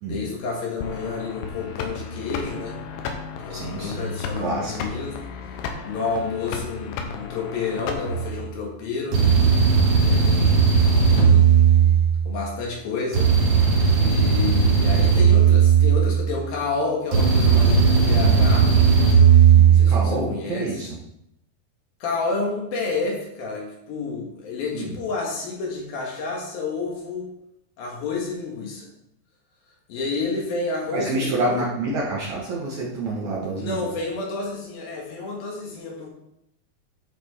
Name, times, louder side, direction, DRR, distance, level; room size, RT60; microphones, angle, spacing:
voice 1, 0.1-2.8 3.4-5.2 5.8-9.2 10.0-10.5 11.0-11.6 12.2-13.7 14.0-18.7 19.7-20.8 22.0-27.3 27.8-28.9 29.9-31.7 33.6-36.1, left 4 dB, 70° left, -1 dB, 3.3 m, -30 dB
sound 1, 0.8-8.4, left 5 dB, 85° left, 3.0 m, -34 dB
voice 2, 3.5-4.7 10.3-10.8 19.6-21.0 24.7-25.0 30.9-33.8, right 2 dB, 65° right, -4 dB, 2.0 m, -28 dB
sound 2, 8.1-8.3 9.1-12.4 13.1-16.4 17.1-20.1, right 6 dB, 90° right, 4.2 m, -16 dB
11.0 x 4.5 x 4.2 m, 0.79 s
omnidirectional pair, 4.5 m